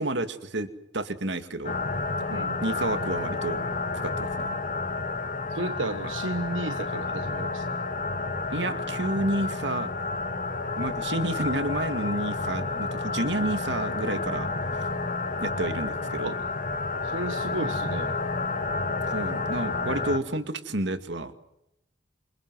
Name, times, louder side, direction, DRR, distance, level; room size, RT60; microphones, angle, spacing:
voice 1, 0.0-1.8 2.6-3.6 3.9-4.5 8.5-9.9 10.8-14.5 14.8-14.9 15.4-16.3 19.0-21.3, right 1 dB, 65° right, 10 dB, 2.3 m, -30 dB
sound 1, 1.6-20.2, left 3 dB, 45° left, 1.9 m, -30 dB
voice 2, 2.3-2.6 5.5-7.7 16.2-16.4 17.0-18.1, right 2 dB, 80° right, 9 dB, 1.3 m, -33 dB
28.0 x 27.5 x 7.7 m, 0.87 s
head